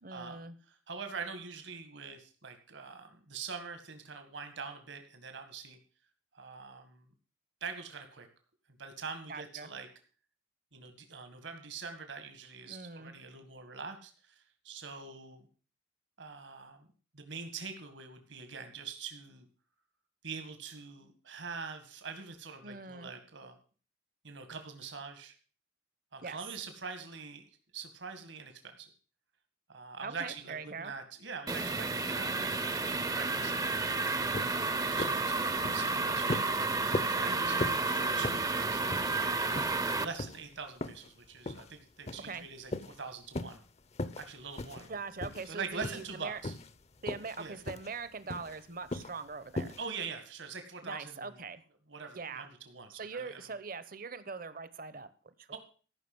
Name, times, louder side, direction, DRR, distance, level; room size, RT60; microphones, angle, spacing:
voice 1, 0.0-0.6 9.3-9.7 12.7-13.1 22.6-23.1 26.2-26.4 30.0-30.9 37.1-37.6 42.2-42.5 44.9-46.4 47.0-49.8 50.8-51.6 52.1-52.5 52.9-55.6, right 4 dB, 50° right, 14 dB, 1.0 m, -42 dB
voice 2, 0.7-5.8 6.3-7.1 7.6-8.3 8.8-9.9 10.7-15.5 16.2-16.9 17.1-19.5 20.2-23.6 24.2-25.3 26.1-27.5 27.7-28.9 29.7-32.3 32.7-33.6 34.6-36.5 37.0-38.9 39.9-43.6 44.2-44.9 45.5-46.5 47.4-47.6 49.8-51.4 51.9-53.5 55.5-55.6, right 5 dB, 75° right, 7 dB, 2.1 m, -44 dB
sound 1, 31.5-40.0, right 3 dB, 20° right, 0.6 m, -31 dB
sound 2, 33.9-34.0 34.3-34.6 35.0-35.3 35.6-35.9 36.3-36.6 36.9-37.2 37.6-37.9 38.2-38.5 38.9-39.3 39.5-39.8 40.2-40.4 40.8-41.1 41.5-41.7 42.1-42.4 42.7-43.0 43.3-43.6 43.9-44.3 44.6-44.9 45.2-45.5 45.8-46.1 46.4-46.7 47.1-47.4 47.6-47.9 48.3-48.6 48.9-49.2 49.6-49.8, left 2 dB, 35° left, 0.7 m, -38 dB
14.5 x 6.0 x 7.9 m, 0.40 s
head